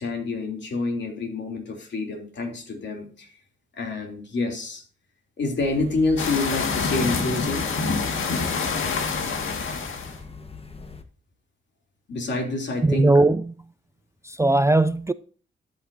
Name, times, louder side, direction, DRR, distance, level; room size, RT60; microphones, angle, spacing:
voice 1, 0.0-3.3 3.8-4.8 5.4-7.7 12.1-13.1, left 3 dB, 65° left, 3.2 m, -27 dB
sound 1, 5.6-11.0, left 4 dB, 30° left, 1.3 m, -42 dB
sound 2, 6.2-10.2, left 4 dB, 90° left, 1.9 m, -26 dB
voice 2, 12.8-13.5 14.2-15.1, right 2 dB, 15° right, 0.3 m, -19 dB
13.5 x 8.3 x 2.7 m
wide cardioid pair, 115°, 20 cm